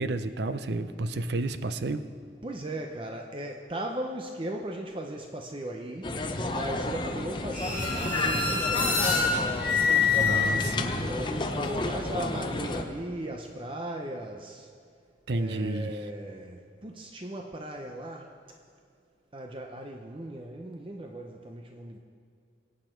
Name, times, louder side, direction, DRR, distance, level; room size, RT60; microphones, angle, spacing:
voice 1, 0.0-2.0 10.2-11.1 15.3-15.9, right 2 dB, 65° right, 11 dB, 0.6 m, -31 dB
voice 2, 2.4-9.6 10.7-14.7 15.3-18.3 19.3-22.0, right 1 dB, 30° right, 3 dB, 0.6 m, -37 dB
sound 1, 6.0-12.8, left 2 dB, 25° left, 0.7 m, -31 dB
sound 2, 7.5-11.1, left 5 dB, 10° right, 4.6 m, -26 dB
23.5 x 8.6 x 4.5 m, 2.2 s
head